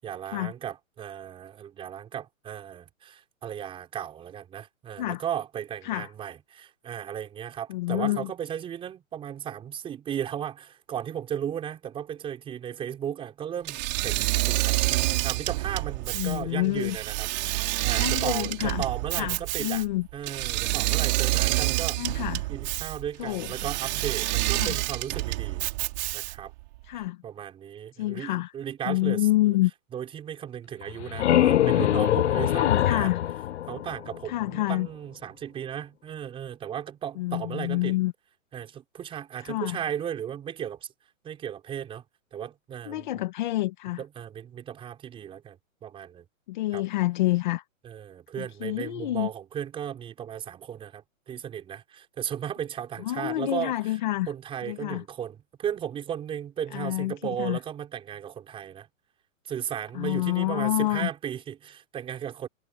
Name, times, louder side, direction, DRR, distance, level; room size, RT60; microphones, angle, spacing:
voice 1, 0.0-14.8 15.2-19.8 20.1-22.2 22.5-25.7 26.1-26.5 26.9-29.6 29.9-33.1 33.7-38.0 38.5-40.9 41.2-42.0 42.3-43.1 44.0-46.2 46.7-46.8 47.8-54.0 54.3-58.9 59.4-62.5, right 9 dB, 15° right, 5.8 m, -35 dB
voice 2, 7.7-8.3 16.1-17.0 18.0-18.8 19.1-20.1 22.0-22.5 23.2-23.5 24.5-24.7 26.8-27.2 28.0-28.5 28.8-29.7 32.5-33.2 34.3-34.9 37.2-38.1 39.4-39.8 42.9-44.0 46.5-47.6 48.4-49.3 53.0-54.3 54.6-55.0 56.7-57.6 59.9-61.1, left 17 dB, 35° left, 1.5 m, -28 dB
Engine / Mechanisms, 13.7-26.5, right 21 dB, 30° right, 3.5 m, -28 dB
sound 1, 30.8-34.5, left 12 dB, 60° left, 0.5 m, -24 dB
hypercardioid pair, 165°, 41 cm